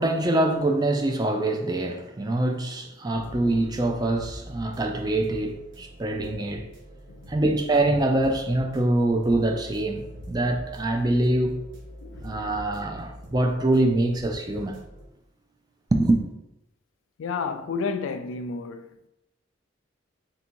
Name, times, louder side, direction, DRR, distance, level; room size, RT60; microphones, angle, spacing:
voice 1, 0.0-6.6 7.3-11.6 12.2-14.8 15.9-16.2, right 2 dB, 20° right, 0.4 m, -24 dB
sound 1, 3.1-15.1, equal, 70° right, 0.9 m, -43 dB
voice 2, 12.0-12.7 17.2-19.1, left 4 dB, 85° left, 0.4 m, -32 dB
3.4 x 2.7 x 4.4 m
head